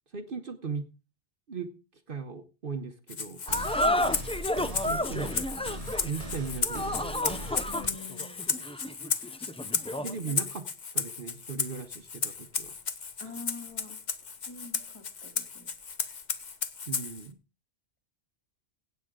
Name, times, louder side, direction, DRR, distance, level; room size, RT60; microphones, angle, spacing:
voice 1, 0.1-0.9 1.5-1.7 2.1-3.4 4.8-5.3 6.0-7.2 10.0-10.6 10.9-12.7 16.9-17.4, right 5 dB, 55° right, 8 dB, 1.1 m, -37 dB
Rattle (instrument), 3.1-17.3, left 5 dB, 45° left, 1.0 m, -34 dB
sound 1, 3.5-10.2, left 1 dB, 5° left, 0.4 m, -31 dB
sound 2, 3.5-7.9, right 1 dB, 35° right, 1.2 m, -40 dB
voice 2, 7.7-8.5 10.2-10.6 13.2-14.0 14.5-15.7, left 4 dB, 25° left, 3 dB, 2.5 m, -45 dB
16.5 x 8.0 x 3.7 m, 0.30 s
omnidirectional pair, 1.2 m